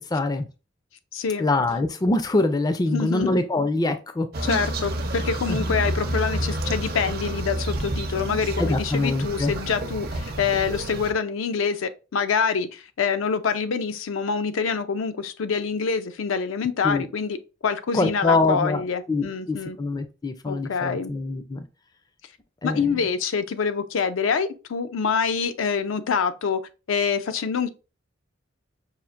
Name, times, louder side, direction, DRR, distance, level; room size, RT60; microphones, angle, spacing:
voice 1, 0.1-0.5 1.4-4.6 5.5-5.8 8.6-9.5 16.8-17.1 17.9-21.7 22.6-23.1, left 2 dB, 20° left, 0.4 m, -24 dB
voice 2, 1.1-1.5 2.9-3.4 4.4-17.4 17.6-19.8 20.5-21.1 22.6-26.6 26.9-27.7, left 6 dB, 80° left, 0.4 m, -26 dB
sound 1, 4.3-11.1, right 1 dB, 50° right, 0.6 m, -29 dB
5.6 x 2.4 x 2.4 m
head